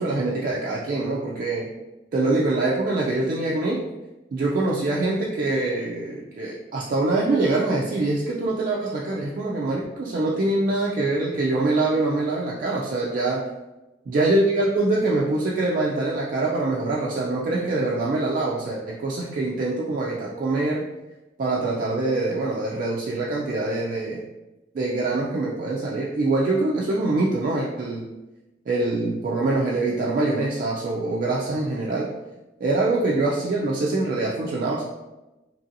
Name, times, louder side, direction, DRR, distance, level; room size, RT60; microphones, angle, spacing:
voice 1, 0.0-1.7 2.1-3.8 4.3-13.4 14.1-20.8 21.4-24.2 24.7-28.1 28.7-32.1 32.6-34.8, right 2 dB, 45° right, -3 dB, 0.3 m, -24 dB
2.9 x 2.7 x 2.5 m, 1.0 s
head